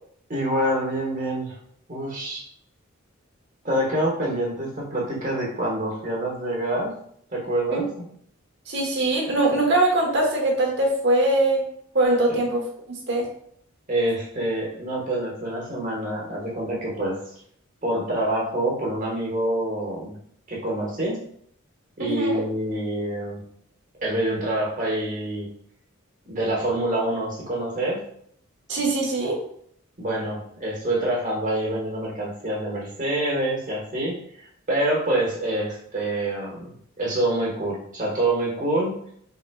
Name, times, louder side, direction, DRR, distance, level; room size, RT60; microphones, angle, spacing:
voice 1, 0.3-1.5 1.9-2.4 3.6-6.9 7.3-7.8 12.3-12.4 13.9-17.3 17.8-20.1 20.5-21.2 22.0-23.4 24.0-25.5 26.2-28.0 30.0-38.9, right 1 dB, 40° right, -4 dB, 1.5 m, -26 dB
voice 2, 8.7-11.6 11.9-12.6 13.1-13.3 22.0-22.4 28.7-29.4, right 2 dB, 55° right, -1 dB, 1.2 m, -22 dB
5.0 x 3.7 x 2.3 m, 0.66 s
head